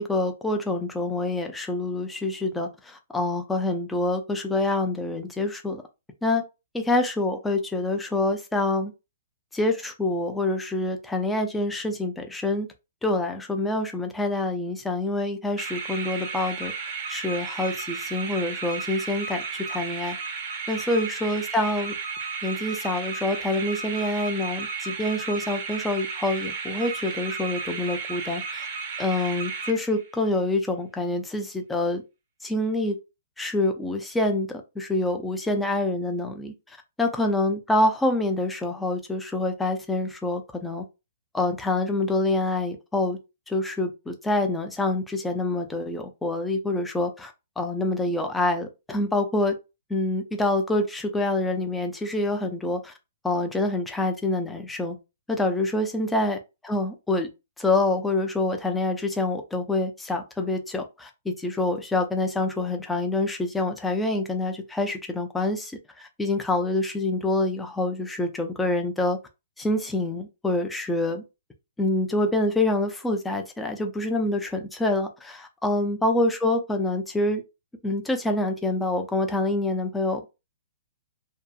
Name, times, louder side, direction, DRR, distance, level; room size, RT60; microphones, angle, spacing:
voice 1, 0.0-5.8 6.2-6.4 6.7-8.9 9.5-12.7 13.0-16.7 17.1-20.2 20.7-21.9 22.4-28.7 29.0-32.0 32.4-32.9 33.4-40.8 41.3-43.2 43.5-49.5 49.9-52.9 53.2-55.0 55.3-56.4 56.6-57.3 57.6-65.7 66.0-69.2 69.6-71.2 71.8-77.4 77.8-80.2, left 2 dB, 5° left, 0.4 m, -26 dB
sound 1, 15.6-30.2, right 5 dB, 40° right, 0.6 m, -34 dB
2.7 x 2.4 x 2.2 m
hypercardioid pair, 160°, 0 cm